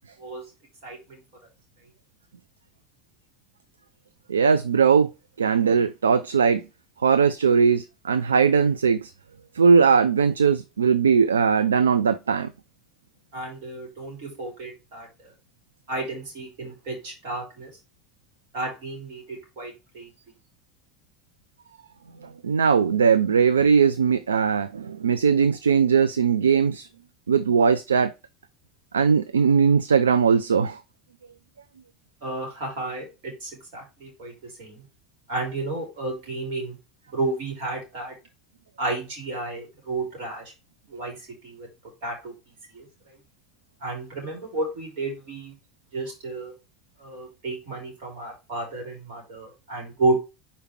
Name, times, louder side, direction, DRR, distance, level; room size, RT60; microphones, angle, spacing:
voice 1, 0.8-1.2 13.3-15.3 15.9-17.8 18.5-20.1 32.2-34.3 34.6-34.8 35.3-36.8 37.1-38.1 38.8-40.5 40.9-41.7 42.0-42.3 42.7-42.9 43.8-45.5 45.9-46.5 47.0-50.2, right 2 dB, 65° right, 3.4 m, -32 dB
voice 2, 4.3-5.1 5.4-6.6 7.0-9.1 9.5-12.5 22.2-26.9 27.3-28.1 28.9-30.8, right 6 dB, 85° right, 0.4 m, -20 dB
5.1 x 4.3 x 4.3 m
figure-of-eight pair, 75°, 0 cm